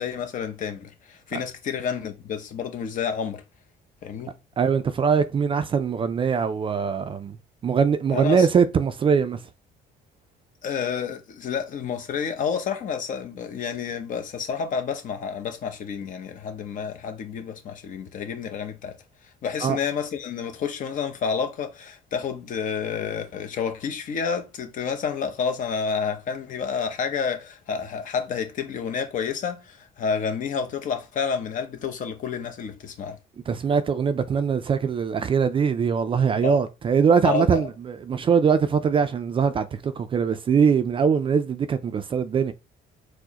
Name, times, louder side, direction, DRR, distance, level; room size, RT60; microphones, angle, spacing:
voice 1, 0.0-3.4 4.0-4.4 8.1-8.5 10.6-19.0 19.4-33.2 36.4-36.6 37.2-37.7, left 6 dB, 50° left, 0.7 m, -29 dB
voice 2, 4.6-7.4 7.6-9.4 19.6-19.8 33.5-42.5, right 6 dB, 30° right, 0.3 m, -22 dB
4.5 x 2.1 x 2.8 m
cardioid pair, 110°, 17 cm